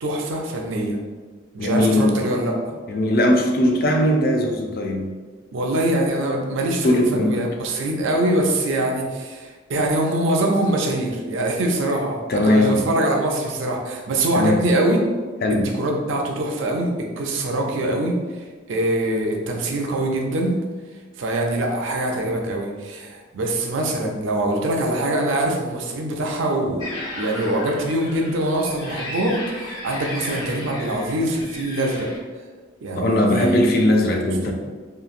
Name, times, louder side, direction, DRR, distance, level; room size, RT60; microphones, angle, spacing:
voice 1, 0.0-1.0 1.5-2.7 5.5-15.0 15.5-18.2 18.7-20.5 21.2-32.1 32.8-33.8 34.5-34.6, right 1 dB, 70° right, 1 dB, 0.5 m, -23 dB
voice 2, 1.6-2.2 2.9-5.1 6.8-7.4 12.3-12.8 14.3-14.6 15.4-15.7 33.0-34.5, left 1 dB, 50° left, 2 dB, 0.4 m, -19 dB
sound 1, 26.8-32.2, left 2 dB, 80° left, 0.9 m, -35 dB
2.8 x 2.5 x 2.5 m, 1.4 s
head